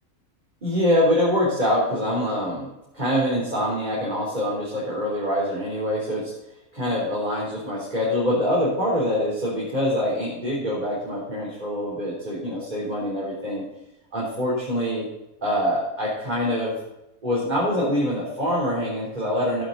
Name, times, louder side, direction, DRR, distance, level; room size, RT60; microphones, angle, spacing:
voice 1, 0.6-2.7 2.9-6.3 6.7-13.6 14.1-15.1 15.4-16.7 17.2-19.6, equal, 30° right, -6 dB, 3.8 m, -24 dB
16.0 x 11.0 x 4.0 m, 0.92 s
omnidirectional pair, 1.6 m